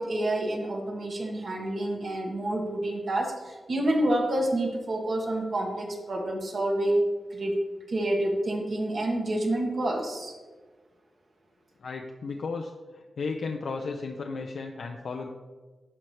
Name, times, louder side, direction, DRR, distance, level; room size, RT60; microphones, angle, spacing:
voice 1, 0.0-7.0 7.3-7.6 7.9-10.3, right 1 dB, 60° right, -1 dB, 1.7 m, -28 dB
voice 2, 11.8-15.3, left 4 dB, 75° left, 2 dB, 0.5 m, -34 dB
12.5 x 4.3 x 3.3 m, 1.3 s
cardioid pair, 70°, 0 cm